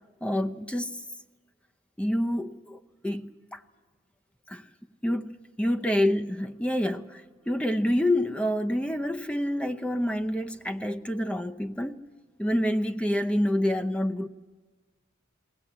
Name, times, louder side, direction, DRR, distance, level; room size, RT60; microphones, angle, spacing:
voice 1, 0.2-1.0 2.0-3.6 4.5-4.7 5.0-12.0 12.4-14.3, left 1 dB, 5° left, 0.7 m, -27 dB
20.5 x 19.0 x 8.6 m
head